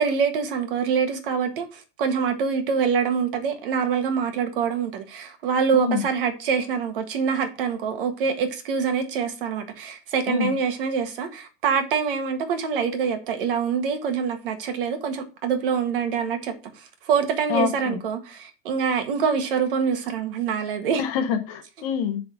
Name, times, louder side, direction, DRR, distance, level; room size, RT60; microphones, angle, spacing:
voice 1, 0.0-21.0 21.8-21.9, right 6 dB, 55° right, 1.6 m, -25 dB
voice 2, 5.7-6.0 10.3-10.5 17.5-18.0 21.0-22.2, left 7 dB, 35° left, 0.8 m, -26 dB
7.0 x 3.8 x 6.0 m
supercardioid pair, 165°, 32 cm